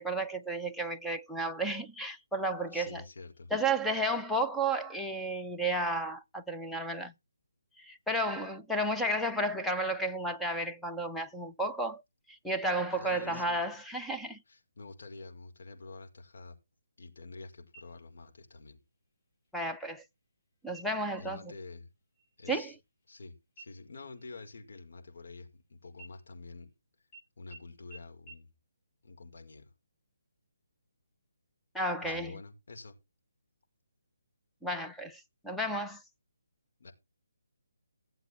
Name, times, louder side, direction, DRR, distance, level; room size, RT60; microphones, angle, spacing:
voice 1, 0.0-3.0 3.5-7.1 7.8-12.0 12.3-14.4 19.5-20.0 20.6-21.4 22.5-22.7 31.7-32.3 34.6-36.0, right 1 dB, ahead, 0.6 m, -32 dB
voice 2, 2.7-3.5 13.0-13.8 14.5-16.6 17.0-18.8 21.2-21.9 22.4-22.7 23.1-26.7 27.4-28.5 29.0-29.7 32.0-33.0 36.8-36.9, left 3 dB, 60° left, 5.2 m, -48 dB
sound 1, 17.7-18.4 18.8-18.9 19.4-20.0 20.7-21.2 21.6-21.8 22.1-23.2 23.6-25.6 25.9-26.7 27.1-27.2 27.5-27.6 27.9-28.0 28.3-28.4, right 4 dB, 25° left, 3.6 m, -55 dB
16.0 x 7.8 x 4.7 m
hypercardioid pair, 165°, 0 cm